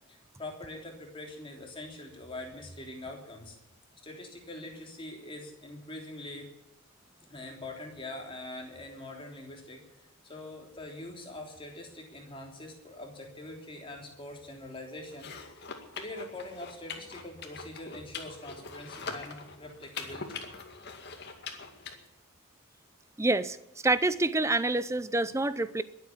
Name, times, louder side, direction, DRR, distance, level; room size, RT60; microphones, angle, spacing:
voice 1, 0.1-3.6 4.0-6.5 7.3-15.6 15.9-20.5, left 1 dB, 25° left, 1 dB, 3.5 m, -43 dB
sound 1, 15.1-21.9, left 5 dB, 50° left, 2.1 m, -43 dB
voice 2, 23.2-23.6 23.8-25.8, right 2 dB, 15° right, 15 dB, 0.6 m, -27 dB
22.0 x 8.4 x 7.4 m, 0.92 s
head